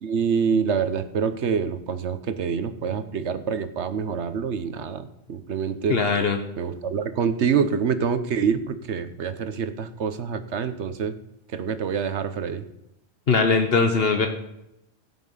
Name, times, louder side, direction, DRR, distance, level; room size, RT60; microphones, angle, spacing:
voice 1, 0.0-6.0 6.6-11.1 11.5-12.6, right 6 dB, 85° right, 11 dB, 1.3 m, -26 dB
voice 2, 5.9-6.4 13.3-14.3, left 4 dB, 60° left, 5 dB, 1.3 m, -20 dB
17.0 x 6.0 x 5.6 m, 0.85 s
omnidirectional pair, 1.1 m